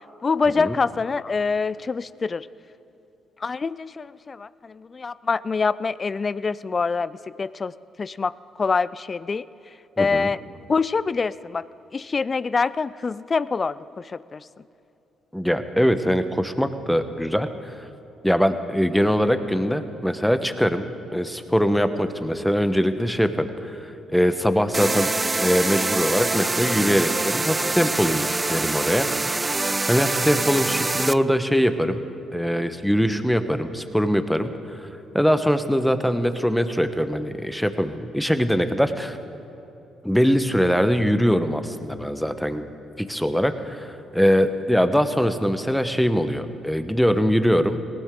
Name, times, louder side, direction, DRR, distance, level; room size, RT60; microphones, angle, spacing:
voice 1, 0.2-2.5 3.4-7.7 8.0-8.3 8.6-9.4 10.0-10.4 10.7-11.7 11.9-14.5, left 4 dB, 40° left, 18 dB, 0.4 m, -25 dB
voice 2, 10.0-10.3 15.3-17.5 18.2-20.9 21.1-25.1 25.4-29.1 29.9-32.0 32.3-34.9 35.1-39.2 40.0-42.6 43.0-47.8, equal, ahead, 10 dB, 1.1 m, -22 dB
sound 1, 24.7-31.1, right 2 dB, 25° right, 0.4 m, -25 dB
19.0 x 17.5 x 3.8 m, 2.9 s
hypercardioid pair, 50°, 0 cm